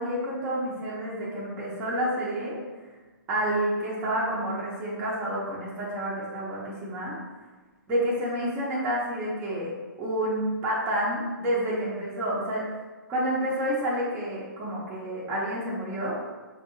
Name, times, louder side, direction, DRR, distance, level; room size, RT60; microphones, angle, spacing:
voice 1, 0.0-2.6 3.3-7.1 7.9-9.7 10.0-12.6 13.1-16.2, right 1 dB, 15° right, -7 dB, 0.7 m, -29 dB
5.3 x 2.7 x 2.6 m, 1.3 s
hypercardioid pair, 155°, 11 cm